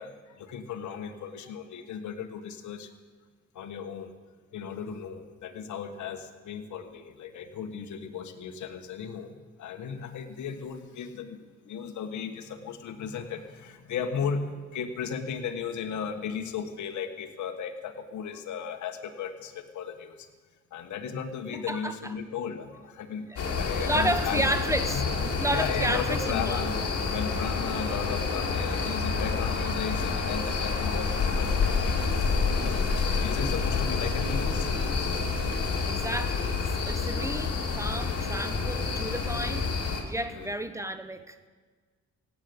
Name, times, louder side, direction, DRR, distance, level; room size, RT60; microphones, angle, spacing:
voice 1, 0.0-2.9 3.5-4.1 4.5-14.4 14.7-20.3 20.7-23.3 23.6-24.5 24.9-26.8 27.1-32.0 32.6-34.7 40.2-40.5, left 7 dB, 70° left, 7 dB, 1.5 m, -36 dB
voice 2, 21.5-22.0 23.3-25.0 25.4-26.6 28.7-28.9 30.7-31.1 35.6-41.4, right 1 dB, 10° right, 10 dB, 1.0 m, -32 dB
sound 1, 23.4-40.0, left 4 dB, 55° left, 2.8 m, -28 dB
17.0 x 8.5 x 8.0 m, 1.5 s
cardioid pair, 90°, 30 cm